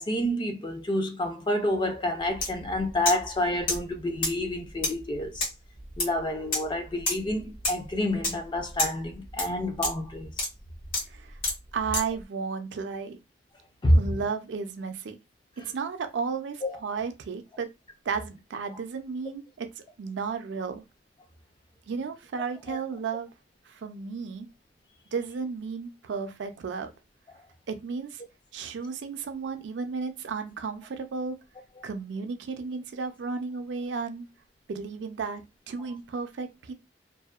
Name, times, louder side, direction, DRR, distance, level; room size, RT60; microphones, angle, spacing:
voice 1, 0.0-5.4 6.0-10.3 13.8-14.2 16.6-16.8 22.7-22.8, left 1 dB, 25° left, 0.4 m, -28 dB
sound 1, 2.3-2.5 2.8-3.3 3.7-12.2, left 2 dB, 50° left, 1.2 m, -30 dB
voice 2, 11.7-13.2 13.9-15.2 15.6-17.7 18.1-20.8 21.9-23.3 23.7-24.5 25.1-26.9 27.7-28.2 28.5-31.4 31.8-34.3 34.7-35.4 35.7-36.7, right 5 dB, 70° right, 0.4 m, -33 dB
2.6 x 2.1 x 2.3 m
head